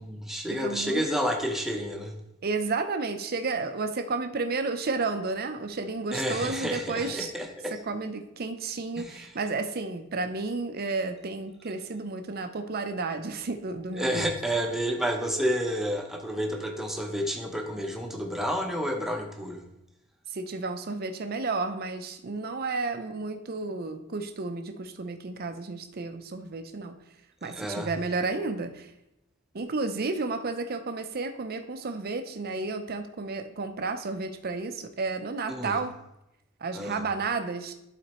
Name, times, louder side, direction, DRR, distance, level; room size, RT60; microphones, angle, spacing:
voice 1, 0.0-2.2 6.1-7.7 9.0-9.4 13.9-19.6 27.4-27.9 35.5-35.8 36.7-37.0, equal, ahead, 1 dB, 0.8 m, -30 dB
voice 2, 0.6-1.0 2.4-7.3 7.9-14.3 20.3-27.0 27.4-28.9 29.5-35.9 36.6-37.7, right 3 dB, 45° right, 7 dB, 0.6 m, -32 dB
12.0 x 4.2 x 3.0 m, 0.86 s
head